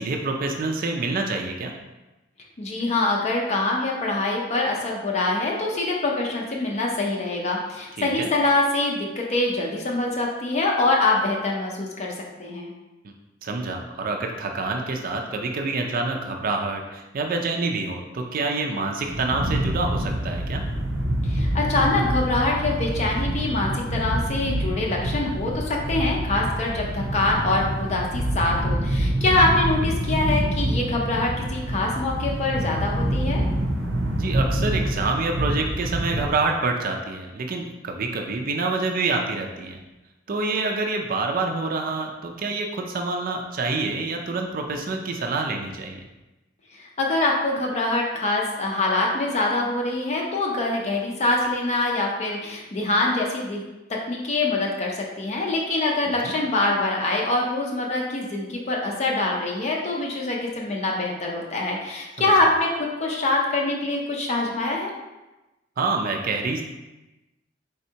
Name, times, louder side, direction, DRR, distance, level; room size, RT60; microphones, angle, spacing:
voice 1, 0.0-1.7 8.0-8.3 13.4-20.6 34.2-39.8 40.3-46.0 56.2-56.3 62.2-62.3 65.8-66.6, right 3 dB, 50° right, 2 dB, 0.4 m, -27 dB
voice 2, 2.6-12.1 12.4-12.7 21.3-33.4 46.7-53.6 54.1-64.9, left 2 dB, 35° left, -1 dB, 0.5 m, -24 dB
sound 1, 19.0-36.3, right 1 dB, 85° right, 0.6 m, -26 dB
4.2 x 3.5 x 2.8 m, 1.0 s
head